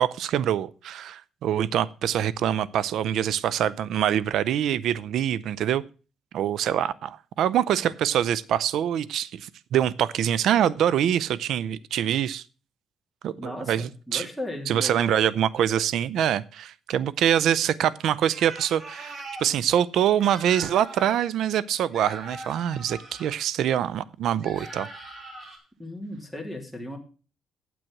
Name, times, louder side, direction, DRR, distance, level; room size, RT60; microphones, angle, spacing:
voice 1, 0.0-5.8 6.3-12.4 13.2-14.3 14.7-24.9, right 10 dB, 75° right, 0.5 m, -25 dB
voice 2, 13.4-15.4 25.8-27.0, left 1 dB, 5° right, 2.9 m, -36 dB
sound 1, 18.2-19.5 20.2-21.2 21.9-23.3 24.4-25.6, right 2 dB, 40° right, 3.8 m, -41 dB
9.2 x 7.7 x 5.9 m
cardioid pair, 90°, 0 cm